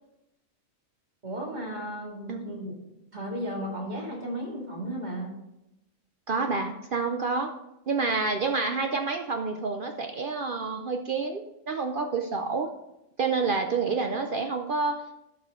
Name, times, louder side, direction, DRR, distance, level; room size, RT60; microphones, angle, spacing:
voice 1, 1.2-2.7 3.1-5.3, equal, 35° right, -2 dB, 2.4 m, -34 dB
voice 2, 6.3-7.5 7.9-12.7 13.2-15.0, right 4 dB, 55° right, 5 dB, 0.7 m, -28 dB
12.5 x 5.9 x 3.7 m, 0.90 s
omnidirectional pair, 1.3 m